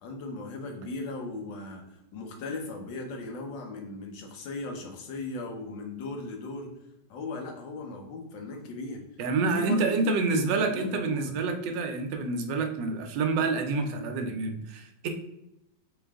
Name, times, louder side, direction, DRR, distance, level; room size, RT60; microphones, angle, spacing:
voice 1, 0.0-6.7 7.1-9.0 9.5-11.4, left 2 dB, 85° left, 2 dB, 1.6 m, -37 dB
voice 2, 9.2-15.1, right 3 dB, 85° right, 5 dB, 1.3 m, -28 dB
3.9 x 3.8 x 3.5 m, 0.87 s
omnidirectional pair, 1.9 m